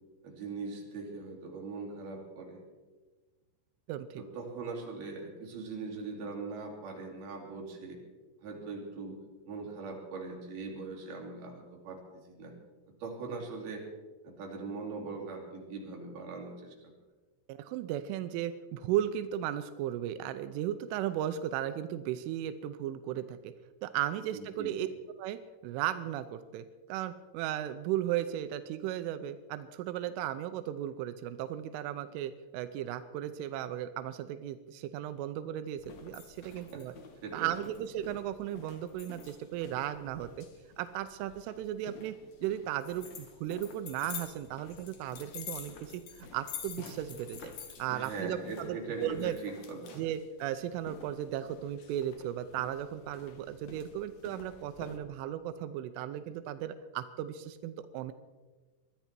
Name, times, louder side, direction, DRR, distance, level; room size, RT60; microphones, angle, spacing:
voice 1, 0.2-2.7 4.2-8.0 8.4-12.0 12.3-12.5 13.0-13.8 14.2-16.9 24.3-24.7 36.4-36.8 37.2-37.5 47.9-50.0, right 4 dB, 55° right, -1 dB, 4.7 m, -41 dB
voice 2, 3.9-4.2 17.5-23.5 23.8-24.9 25.2-36.9 37.3-40.5 40.8-42.2 42.4-47.5 47.8-49.4 50.0-58.1, right 11 dB, 90° right, 10 dB, 3.2 m, -36 dB
sound 1, 35.8-55.0, left 6 dB, 60° left, 2.0 m, -48 dB
22.0 x 13.5 x 4.4 m, 1.3 s
omnidirectional pair, 5.5 m